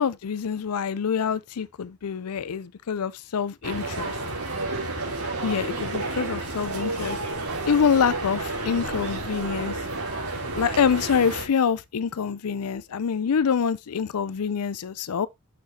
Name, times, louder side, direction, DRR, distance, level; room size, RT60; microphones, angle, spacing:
voice 1, 0.0-4.1 5.4-7.2 7.7-9.8 10.5-15.3, left 7 dB, 85° left, 0.5 m, -26 dB
sound 1, 3.6-11.4, right 2 dB, 85° right, 3.2 m, -31 dB
8.8 x 6.6 x 2.8 m
head